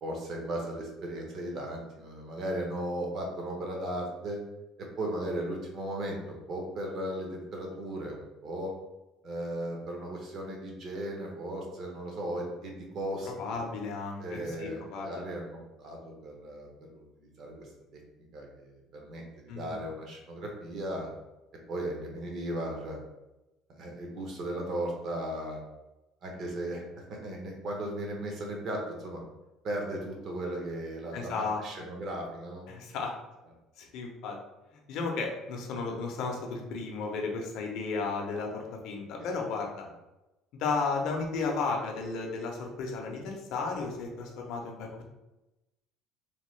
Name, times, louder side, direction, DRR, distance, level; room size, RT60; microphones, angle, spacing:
voice 1, 0.0-4.4 4.8-8.7 9.2-13.6 14.2-18.0 18.3-21.1 21.7-23.0 23.7-25.6 26.2-29.2 29.6-32.7, right 1 dB, 40° right, 0 dB, 0.6 m, -36 dB
voice 2, 13.4-15.2 19.5-19.8 31.1-31.6 32.7-33.1 33.8-34.4 34.9-39.9 40.5-45.0, left 4 dB, 55° left, 1 dB, 0.5 m, -34 dB
3.0 x 2.2 x 3.1 m, 0.99 s
cardioid pair, 175°, 0 cm